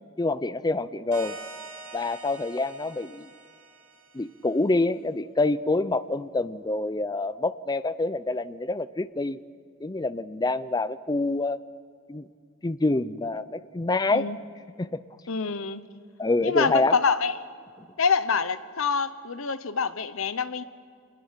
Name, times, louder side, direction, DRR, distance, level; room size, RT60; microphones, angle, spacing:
voice 1, 0.2-1.4 1.9-3.3 4.1-9.4 9.8-11.6 12.1-12.3 12.6-14.3 14.8-15.0 16.2-16.9, left 2 dB, 20° left, 15 dB, 0.4 m, -26 dB
sound 1, 1.1-4.5, right 3 dB, 85° right, 6.2 m, -45 dB
voice 2, 15.3-15.8 16.4-17.3 18.0-20.6, left 5 dB, 65° left, 13 dB, 0.9 m, -26 dB
26.0 x 20.5 x 5.8 m, 2.3 s
head